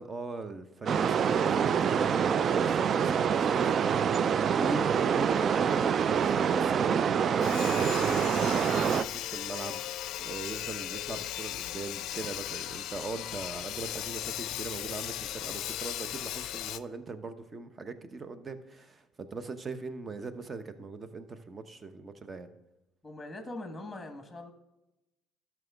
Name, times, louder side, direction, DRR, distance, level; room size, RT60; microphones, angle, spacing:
voice 1, 0.0-3.7 4.6-9.8 10.2-22.5, right 3 dB, 30° right, 10 dB, 0.9 m, -40 dB
sound 1, 0.9-9.0, right 7 dB, 45° right, 0.3 m, -26 dB
Sawing, 7.4-16.8, left 13 dB, 65° left, 0.4 m, -37 dB
voice 2, 23.0-24.5, left 2 dB, 15° left, 5 dB, 1.3 m, -41 dB
12.5 x 6.2 x 3.5 m, 0.96 s
hypercardioid pair, 65°, 0 cm